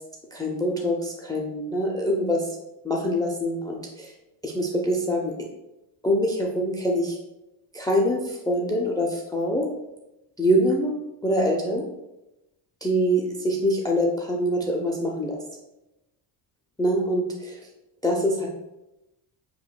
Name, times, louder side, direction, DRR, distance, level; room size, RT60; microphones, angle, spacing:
voice 1, 0.3-2.5 2.8-4.1 4.4-5.5 6.0-7.2 7.7-9.7 10.4-10.9 11.2-11.8 12.8-15.4 16.8-17.6 18.0-18.5, equal, 10° left, -1 dB, 0.4 m, -24 dB
6.5 x 3.0 x 2.2 m, 0.95 s
cardioid pair, 110°, 47 cm